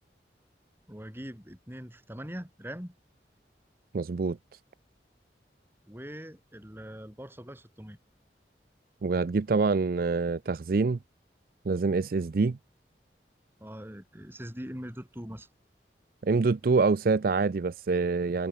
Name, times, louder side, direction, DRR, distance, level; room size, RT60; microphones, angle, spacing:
voice 1, 0.9-3.0 5.8-8.0 13.6-15.5, equal, 15° right, 4.3 m, -42 dB
voice 2, 3.9-4.4 9.0-11.0 11.7-12.6 16.2-18.5, right 4 dB, 55° right, 0.4 m, -26 dB
head